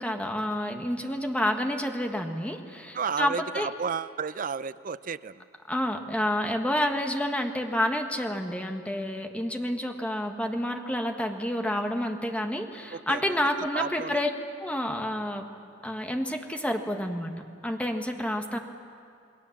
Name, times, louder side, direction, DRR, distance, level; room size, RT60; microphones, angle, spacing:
voice 1, 0.0-3.7 5.7-14.3 14.6-15.4 15.8-17.3 17.6-18.6, left 1 dB, 5° left, 4 dB, 1.4 m, -29 dB
voice 2, 2.9-5.4 12.9-13.4 13.7-14.2, right 6 dB, 45° right, 15 dB, 0.5 m, -32 dB
28.0 x 20.0 x 7.2 m, 2.4 s
head